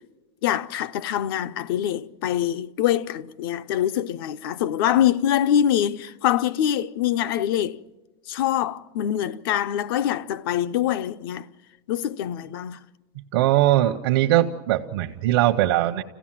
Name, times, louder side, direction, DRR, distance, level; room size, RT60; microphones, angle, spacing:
voice 1, 0.4-7.8 8.3-11.5 11.9-12.8, left 11 dB, 65° left, 0.6 m, -24 dB
voice 2, 13.3-16.0, right 14 dB, 70° right, 0.8 m, -20 dB
25.5 x 16.5 x 7.5 m
supercardioid pair, 160°, 13 cm